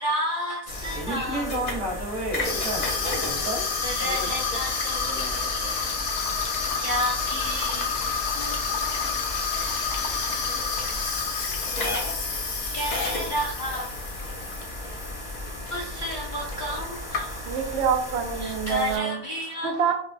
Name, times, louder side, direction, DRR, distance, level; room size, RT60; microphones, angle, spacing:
voice 1, 0.0-1.4 3.8-5.1 6.8-7.8 12.7-13.8 15.7-17.2 18.4-19.7, equal, 60° left, 0.5 m, -31 dB
sound 1, 0.7-19.0, left 1 dB, 35° left, 0.8 m, -34 dB
voice 2, 0.9-2.9 3.2-3.7 4.0-4.3 5.1-5.7, right 1 dB, 80° right, 1.8 m, -32 dB
Water tap faucet / Sink (filling or washing), 2.4-15.1 15.5-15.8 16.5-16.6 16.8-17.6, left 5 dB, 85° left, 1.1 m, -29 dB
voice 3, 17.2-19.2 19.6-19.9, right 7 dB, 60° right, 0.7 m, -26 dB
5.8 x 2.3 x 2.5 m
omnidirectional pair, 1.6 m